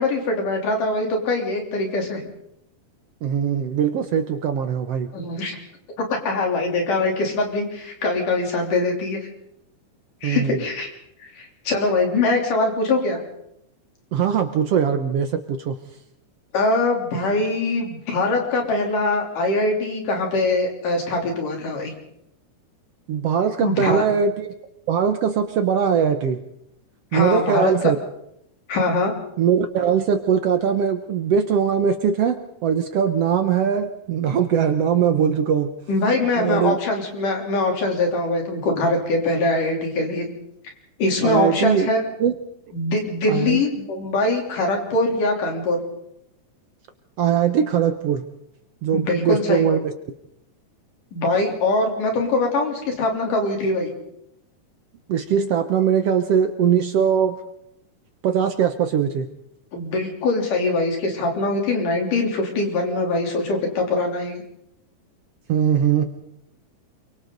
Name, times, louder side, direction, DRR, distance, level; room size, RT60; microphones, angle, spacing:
voice 1, 0.0-2.2 5.1-5.6 6.2-9.3 10.2-10.9 11.2-13.2 16.5-21.9 23.6-24.0 27.1-27.9 28.7-29.1 35.9-40.3 41.0-42.0 42.7-45.8 48.9-49.8 51.1-53.9 59.7-64.4, left 2 dB, 80° left, 1 dB, 5.0 m, -22 dB
voice 2, 3.2-5.1 10.2-10.6 14.1-15.8 23.1-24.5 24.9-26.4 27.1-28.0 29.4-35.7 36.4-36.8 41.2-41.9 42.2-42.3 43.3-43.6 47.2-48.3 48.8-49.9 55.1-57.4 58.2-59.3 65.5-66.0, right 7 dB, 65° right, 8 dB, 1.6 m, -21 dB
28.0 x 23.5 x 3.9 m, 0.78 s
omnidirectional pair, 3.6 m